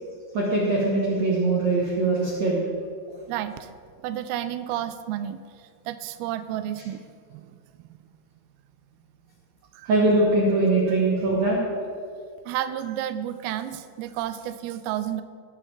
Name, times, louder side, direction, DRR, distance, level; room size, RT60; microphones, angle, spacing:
voice 1, 0.3-2.6 9.9-11.6, right 2 dB, 65° right, -3 dB, 1.8 m, -22 dB
voice 2, 3.3-3.7 4.0-5.4 5.9-7.0 7.3-8.0 9.7-9.9 10.9-11.0 12.5-15.2, right 11 dB, 85° right, 11 dB, 2.3 m, -31 dB
18.0 x 7.3 x 3.4 m, 2.2 s
omnidirectional pair, 4.6 m